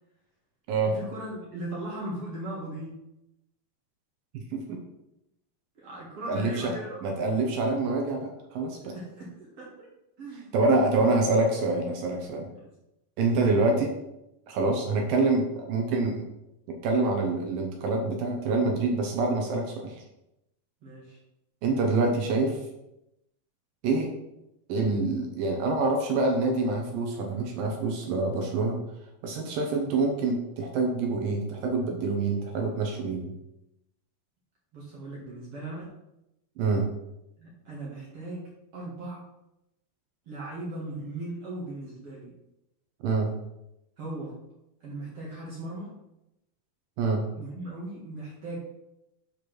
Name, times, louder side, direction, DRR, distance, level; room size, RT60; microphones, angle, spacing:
voice 1, 0.9-3.0 5.8-7.3 8.9-9.9 10.2-10.5 10.9-11.0 13.2-13.3 20.8-21.2 34.7-35.9 37.4-39.2 40.3-42.3 44.0-44.3 44.8-45.9 47.3-48.6, right 1 dB, 45° right, -5 dB, 2.2 m, -38 dB
voice 2, 4.3-4.8 6.3-6.7 7.0-8.9 10.5-12.5 13.2-13.9 14.5-16.2 16.8-20.0 21.6-22.6 23.8-24.1 24.7-28.8 29.2-33.3 36.6-36.9 43.0-43.3 47.0-47.2, right 3 dB, 70° right, 1 dB, 2.4 m, -26 dB
7.1 x 5.0 x 6.1 m, 0.89 s
omnidirectional pair, 4.7 m